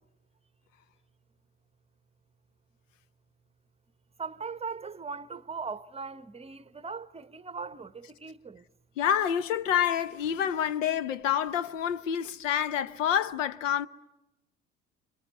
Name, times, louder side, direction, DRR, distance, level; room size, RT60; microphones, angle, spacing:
voice 1, 4.2-8.6, right 5 dB, 15° right, 0.9 m, -39 dB
voice 2, 9.0-13.9, left 9 dB, 75° left, 0.9 m, -28 dB
29.5 x 24.5 x 8.1 m
figure-of-eight pair, 65°, 38 cm